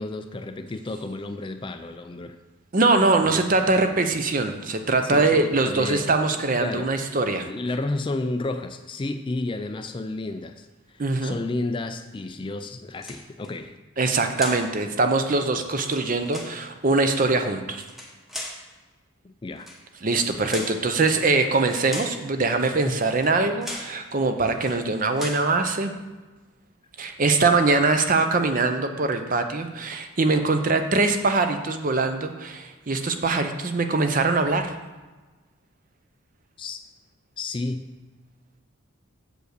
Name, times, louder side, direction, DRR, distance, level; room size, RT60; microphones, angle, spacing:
voice 1, 0.0-2.4 3.2-3.4 5.0-7.1 7.4-13.8 15.3-15.4 19.2-19.7 22.8-23.0 36.6-36.8 37.4-37.9, left 2 dB, 25° left, 8 dB, 0.3 m, -32 dB
voice 2, 2.7-7.5 11.0-11.4 14.0-17.8 20.0-25.9 27.0-34.7, right 3 dB, 40° right, 7 dB, 0.6 m, -22 dB
sound 1, 12.9-13.5 14.4-14.7 15.7-16.6 17.8-18.6 19.6-19.8 20.5-20.8 21.6-22.2 23.1-23.3 23.6-24.0 24.5-24.8 25.1-25.5, left 1 dB, ahead, 0.9 m, -37 dB
7.7 x 5.0 x 6.6 m, 1.2 s
head